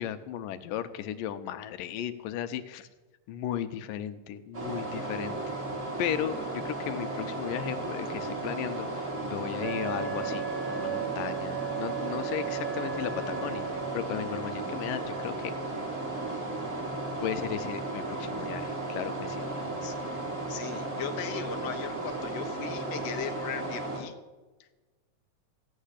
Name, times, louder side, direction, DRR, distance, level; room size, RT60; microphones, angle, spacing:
voice 1, 0.0-2.9 3.3-5.4 6.0-13.7 13.9-15.6 17.2-19.5, left 10 dB, 80° left, 10 dB, 2.4 m, -35 dB
sound 1, 4.5-24.0, right 2 dB, 20° right, 3.0 m, -35 dB
Wind instrument woodwind instrument, 9.6-14.1, right 11 dB, 50° right, 1.4 m, -37 dB
voice 2, 20.5-24.1, left 8 dB, 65° left, 5 dB, 1.8 m, -38 dB
16.0 x 7.7 x 10.0 m, 1.2 s
omnidirectional pair, 4.0 m